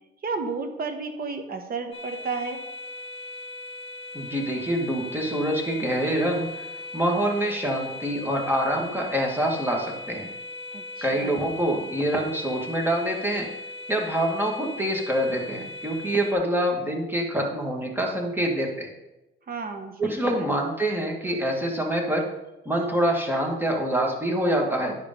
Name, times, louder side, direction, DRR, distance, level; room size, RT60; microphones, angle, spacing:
voice 1, 0.2-2.6 10.7-11.3 19.5-20.5, right 4 dB, 50° right, 6 dB, 1.3 m, -32 dB
sound 1, 1.9-16.3, left 2 dB, 30° left, 1.3 m, -38 dB
voice 2, 4.1-6.7 6.9-10.3 11.0-13.5 13.9-18.9 20.0-22.3 22.7-25.0, right 1 dB, 10° right, 0 dB, 2.0 m, -26 dB
10.5 x 5.1 x 5.3 m, 0.99 s
cardioid pair, 90°, 20 cm